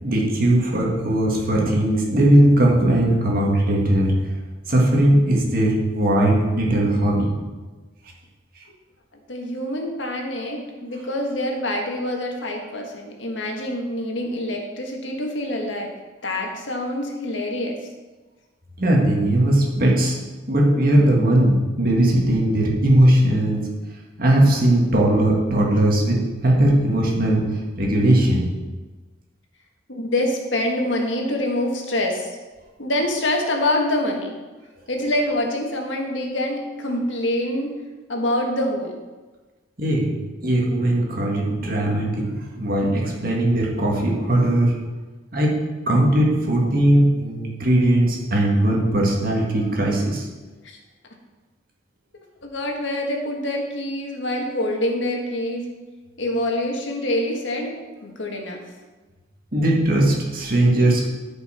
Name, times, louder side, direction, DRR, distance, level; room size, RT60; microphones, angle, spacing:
voice 1, 0.0-4.1 4.7-7.3 8.6-8.7 18.8-20.2 20.5-23.6 24.2-28.5 39.8-44.8 45.3-45.5 45.9-50.3 59.5-61.1, right 1 dB, 50° right, -2 dB, 2.0 m, -19 dB
voice 2, 9.3-15.9 16.2-17.8 29.9-32.3 32.8-34.3 34.9-37.8 38.1-39.0 52.5-55.7 56.2-57.8 58.0-58.6, left 1 dB, 75° left, 1 dB, 1.6 m, -25 dB
13.0 x 5.6 x 4.4 m, 1.3 s
head